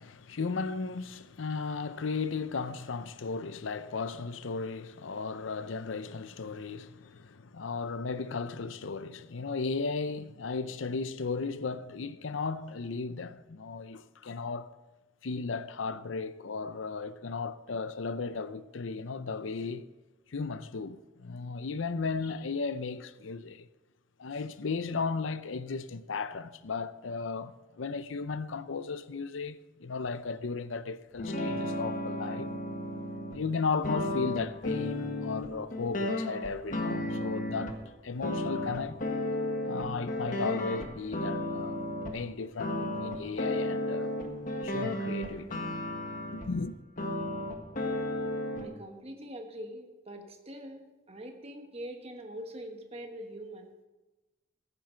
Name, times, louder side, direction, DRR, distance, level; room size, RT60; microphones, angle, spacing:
voice 1, 0.0-14.7 15.2-19.9 20.3-23.7 24.2-32.5 33.3-37.8 38.0-39.0 39.6-41.8 42.1-44.1 44.6-45.6 46.4-46.8, left 4 dB, 80° left, 0.6 m, -35 dB
sound 1, 31.2-33.4 33.8-37.8 38.2-42.1 42.6-46.5 47.0-48.6, left 1 dB, 45° left, 1.6 m, -33 dB
voice 2, 48.6-53.9, equal, 30° right, 1.3 m, -43 dB
15.0 x 9.9 x 4.5 m
head